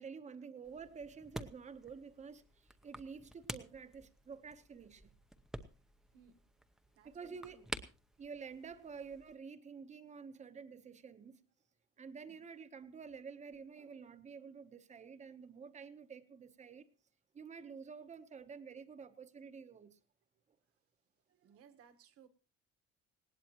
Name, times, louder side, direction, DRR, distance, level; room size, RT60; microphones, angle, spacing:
voice 1, 0.0-5.1 7.0-7.6 8.2-11.4 12.0-16.9 17.3-20.0, right 5 dB, 25° right, 11 dB, 1.0 m, -50 dB
sound 1, 0.6-9.4, equal, ahead, 0.7 m, -50 dB
voice 2, 6.1-6.5 6.9-7.7 12.3-12.4 21.3-22.3, right 7 dB, 50° right, 9 dB, 1.4 m, -63 dB
19.5 x 18.0 x 3.0 m, 0.35 s
cardioid pair, 170°, 31 cm